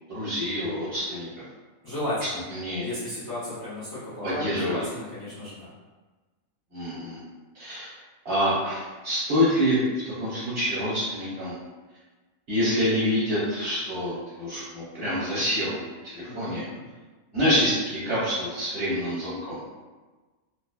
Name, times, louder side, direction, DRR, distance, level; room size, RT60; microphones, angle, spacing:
voice 1, 0.1-1.3 2.5-2.9 4.2-4.8 6.7-7.2 7.5-7.9 8.2-11.5 12.5-16.6 17.3-19.6, equal, 50° right, -10 dB, 1.0 m, -26 dB
voice 2, 1.8-2.4 2.8-5.7 16.2-16.9, left 1 dB, 30° left, -13 dB, 0.4 m, -34 dB
2.4 x 2.2 x 2.2 m, 1.3 s
omnidirectional pair, 1.5 m